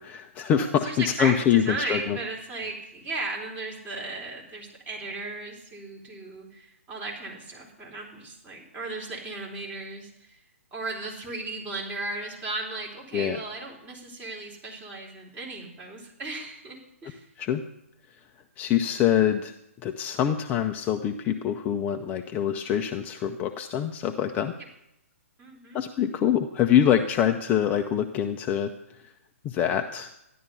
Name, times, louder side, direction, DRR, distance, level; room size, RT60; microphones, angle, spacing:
voice 1, 0.0-2.2 13.1-13.4 17.4-17.6 18.6-19.5 19.8-24.5 25.7-29.1 29.4-30.1, left 9 dB, 20° left, 5 dB, 0.7 m, -25 dB
voice 2, 0.5-10.4 10.7-17.3 25.4-25.8, right 2 dB, 20° right, -1 dB, 4.0 m, -36 dB
14.0 x 11.0 x 5.6 m, 0.81 s
figure-of-eight pair, 130°, 8 cm